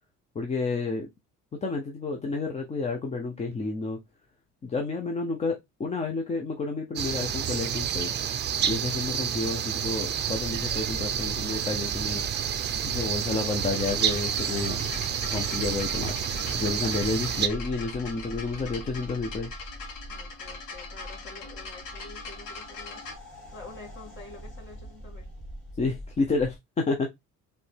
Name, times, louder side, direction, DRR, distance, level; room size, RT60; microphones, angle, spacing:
voice 1, 0.3-1.1 1.5-4.0 4.6-8.1 8.6-12.2 12.8-14.8 15.3-16.1 16.5-19.5 25.8-27.1, left 3 dB, 20° left, 0.6 m, -30 dB
sound 1, 7.0-17.5, right 9 dB, 35° right, 0.5 m, -29 dB
sound 2, 10.3-26.6, equal, 5° left, 2.4 m, -44 dB
sound 3, 13.6-23.2, left 4 dB, 75° left, 1.8 m, -42 dB
voice 2, 20.1-23.0 23.5-25.3, left 3 dB, 35° left, 2.3 m, -47 dB
4.9 x 3.3 x 3.3 m
cardioid pair, 160°, 31 cm